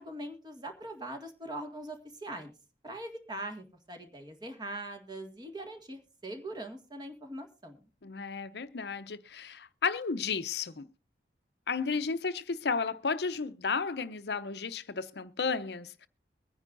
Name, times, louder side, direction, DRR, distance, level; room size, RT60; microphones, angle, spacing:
voice 1, 0.0-2.5 2.8-7.8, right 1 dB, 25° right, 1.9 m, -42 dB
voice 2, 8.0-10.9 11.7-16.1, left 5 dB, 70° left, 0.7 m, -33 dB
22.5 x 9.9 x 2.6 m
head